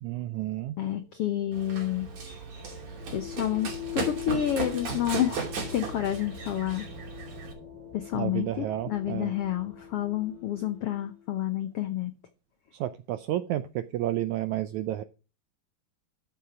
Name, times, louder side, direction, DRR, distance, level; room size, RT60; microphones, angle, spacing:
voice 1, 0.0-0.7 8.1-9.3 12.7-15.0, right 13 dB, 80° right, 1.7 m, -31 dB
voice 2, 0.8-2.1 3.1-6.8 7.9-12.1, left 11 dB, 85° left, 1.3 m, -29 dB
sound 1, 0.8-11.3, left 8 dB, 40° left, 5.4 m, -43 dB
Run, 1.5-7.5, right 5 dB, 50° right, 3.7 m, -36 dB
12.5 x 7.2 x 5.0 m
omnidirectional pair, 4.0 m